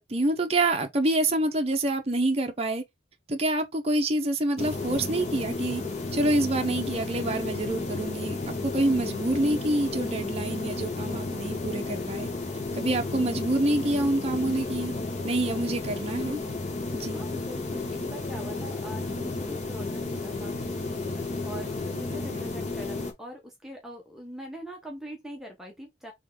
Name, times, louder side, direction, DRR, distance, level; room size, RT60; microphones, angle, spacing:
voice 1, 0.0-2.8 3.3-5.8 6.1-8.4 8.6-12.3 12.7-14.9 15.2-16.4 16.9-17.2 22.3-22.5, right 1 dB, 35° right, 0.7 m, -27 dB
sound 1, 4.6-23.1, left 3 dB, 40° left, 1.1 m, -32 dB
voice 2, 17.0-26.1, equal, ahead, 1.0 m, -43 dB
3.6 x 3.4 x 3.6 m
head